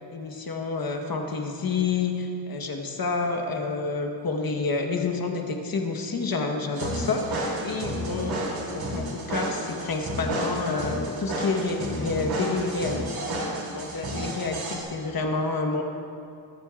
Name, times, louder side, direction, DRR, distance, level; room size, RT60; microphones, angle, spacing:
voice 1, 0.1-8.4 8.7-13.2 13.7-15.8, left 4 dB, 50° left, 3 dB, 1.3 m, -29 dB
sound 1, 6.8-14.8, right 1 dB, 75° right, 3.0 m, -31 dB
23.0 x 9.0 x 2.5 m, 2.5 s
cardioid pair, 105°, 47 cm